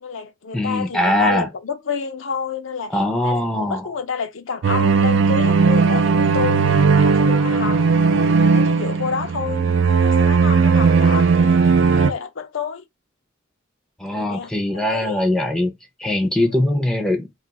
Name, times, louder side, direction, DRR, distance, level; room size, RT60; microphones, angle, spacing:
voice 1, 0.0-12.8 14.1-15.2 16.5-16.6, left 5 dB, 70° left, 0.5 m, -29 dB
voice 2, 0.5-1.5 2.9-3.9 14.0-15.7 16.0-17.3, left 1 dB, 5° left, 0.5 m, -21 dB
sound 1, 4.6-12.1, right 5 dB, 65° right, 0.4 m, -16 dB
2.4 x 2.4 x 3.9 m
head